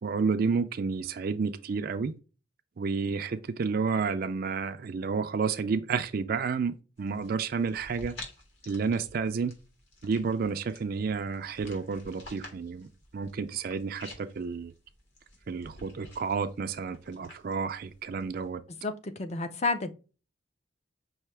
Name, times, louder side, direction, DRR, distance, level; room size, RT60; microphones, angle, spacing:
voice 1, 0.0-2.1 2.8-8.1 8.7-9.5 10.0-12.9 13.1-14.7 15.5-18.6, right 5 dB, 50° right, 0.4 m, -30 dB
sound 1, 7.0-18.5, left 1 dB, 60° left, 1.9 m, -51 dB
voice 2, 18.8-19.9, left 3 dB, 35° left, 0.5 m, -30 dB
5.6 x 2.7 x 3.2 m
head